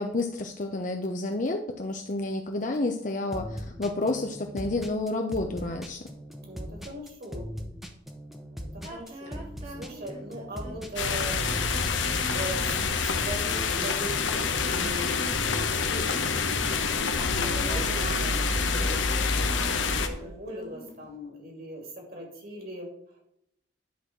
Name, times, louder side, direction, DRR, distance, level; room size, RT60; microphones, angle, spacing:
voice 1, 0.0-6.0, left 2 dB, 40° left, 4 dB, 0.7 m, -30 dB
sound 1, 3.3-19.2, equal, ahead, 0.9 m, -40 dB
voice 2, 6.4-7.5 8.6-11.5 12.1-23.2, equal, 50° right, 1 dB, 2.8 m, -40 dB
sound 2, 8.8-16.3 17.0-21.1, right 1 dB, 35° right, 1.8 m, -42 dB
sound 3, 11.0-20.1, left 5 dB, 75° left, 1.0 m, -27 dB
10.5 x 4.1 x 6.2 m, 0.75 s
head